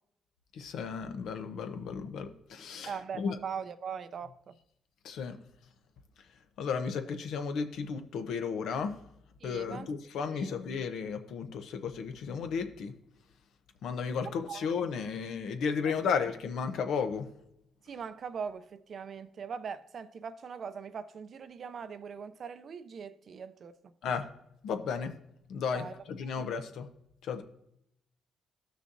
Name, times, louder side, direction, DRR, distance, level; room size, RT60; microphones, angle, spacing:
voice 1, 0.5-3.4 5.0-5.4 6.6-8.9 9.4-12.9 13.8-17.3 24.0-24.3 24.6-25.1 25.5-26.9 27.2-27.4, left 6 dB, 75° left, 0.8 m, -34 dB
voice 2, 2.8-4.5 9.4-9.9 10.3-10.5 14.2-14.7 17.8-23.7 25.7-26.0 26.4-26.5 27.4-27.5, right 6 dB, 55° right, 0.5 m, -41 dB
14.0 x 6.2 x 2.7 m
cardioid pair, 90°, 0 cm